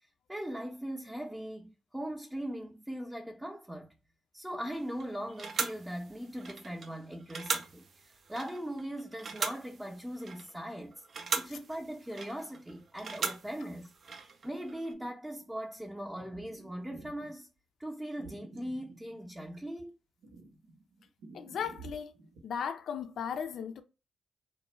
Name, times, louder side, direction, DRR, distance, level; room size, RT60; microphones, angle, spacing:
voice 1, 0.3-4.0 4.3-11.0 11.3-17.5 17.8-19.9, equal, 10° right, 0.6 m, -40 dB
sound 1, 4.7-14.9, right 4 dB, 60° right, 0.4 m, -39 dB
sound 2, 16.1-17.3 18.2-19.7 20.2-22.4, right 3 dB, 80° right, 0.8 m, -51 dB
voice 2, 21.3-22.1 22.4-23.8, left 7 dB, 70° left, 0.3 m, -36 dB
2.4 x 2.1 x 3.0 m
supercardioid pair, 55°, 0 cm